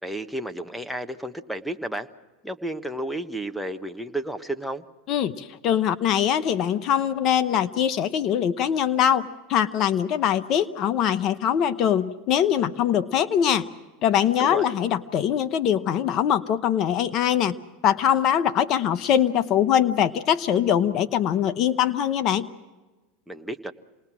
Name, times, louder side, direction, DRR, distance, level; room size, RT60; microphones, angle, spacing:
voice 1, 0.0-2.1 2.4-4.8 14.4-14.6 23.3-23.7, right 1 dB, ahead, 10 dB, 1.4 m, -32 dB
voice 2, 5.1-13.7 14.0-17.6 17.8-22.5, left 9 dB, 50° left, 13 dB, 1.0 m, -22 dB
27.5 x 20.0 x 6.3 m, 1.2 s
hypercardioid pair, 95°, 0 cm